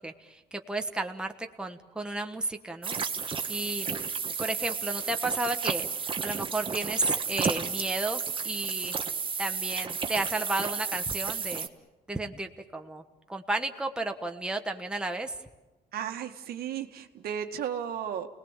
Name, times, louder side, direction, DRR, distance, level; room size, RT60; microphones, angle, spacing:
voice 1, 0.0-3.0 3.2-3.9 4.4-9.0 9.4-11.7 12.1-13.0 13.3-15.3, right 2 dB, 5° right, 4 dB, 1.3 m, -33 dB
sound 1, 2.8-11.7, right 6 dB, 30° right, 1.4 m, -32 dB
voice 2, 15.9-18.3, right 9 dB, 65° right, 5 dB, 1.8 m, -34 dB
29.5 x 19.5 x 7.4 m, 1.1 s
cardioid pair, 110°, 17 cm